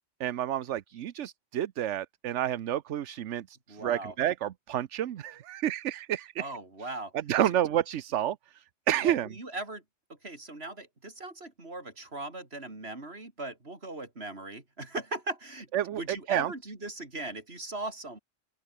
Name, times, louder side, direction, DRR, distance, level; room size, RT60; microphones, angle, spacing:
voice 1, 0.2-6.5 7.3-8.4 8.9-9.3 15.7-16.0 16.3-16.5, right 11 dB, 80° right, 1.1 m, -29 dB
voice 2, 3.7-4.2 6.4-7.1 7.4-7.5 9.0-9.8 10.2-18.2, right 2 dB, 55° right, 4.5 m, -39 dB
open air
omnidirectional pair, 1.2 m